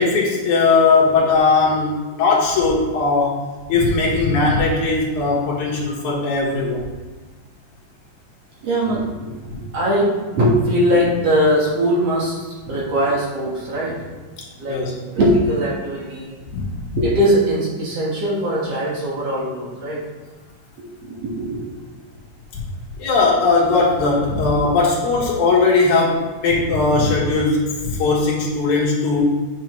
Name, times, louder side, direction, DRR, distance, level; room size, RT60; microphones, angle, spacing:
voice 1, 0.0-3.4 3.7-6.8 14.7-14.9 16.5-16.6 22.5-22.6 23.0-29.2, left 3 dB, 70° left, -3 dB, 2.7 m, -18 dB
voice 2, 8.6-14.0 14.6-14.8 15.1-16.3 17.0-20.0 21.0-21.7, equal, 55° right, -5 dB, 2.5 m, -20 dB
9.1 x 5.3 x 3.1 m, 1.3 s
omnidirectional pair, 3.6 m